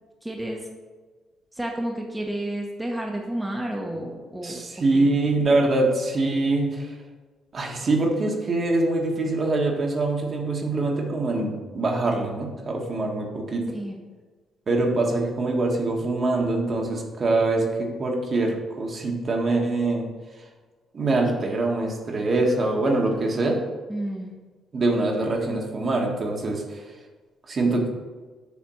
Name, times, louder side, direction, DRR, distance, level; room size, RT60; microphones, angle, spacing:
voice 1, 0.2-0.7 1.6-4.6 4.9-5.0 13.7-14.0 23.9-24.3, right 1 dB, 10° right, -1 dB, 1.0 m, -31 dB
voice 2, 4.4-7.0 7.5-13.6 14.7-20.0 20.9-23.6 24.7-26.9 27.5-27.9, right 2 dB, 45° right, 0 dB, 1.3 m, -24 dB
7.2 x 3.3 x 6.2 m, 1.3 s
cardioid pair, 90°, 0 cm